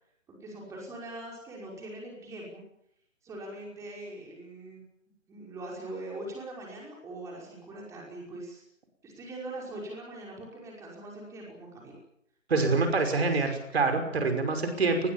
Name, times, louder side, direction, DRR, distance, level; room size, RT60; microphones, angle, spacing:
voice 1, 0.3-2.6 3.2-4.8 5.3-8.6 9.0-12.0 12.5-13.4, right 1 dB, 5° right, -2 dB, 5.6 m, -42 dB
voice 2, 12.5-15.1, right 3 dB, 50° right, 6 dB, 5.8 m, -26 dB
29.5 x 21.0 x 7.4 m, 0.76 s
figure-of-eight pair, 145°, 39 cm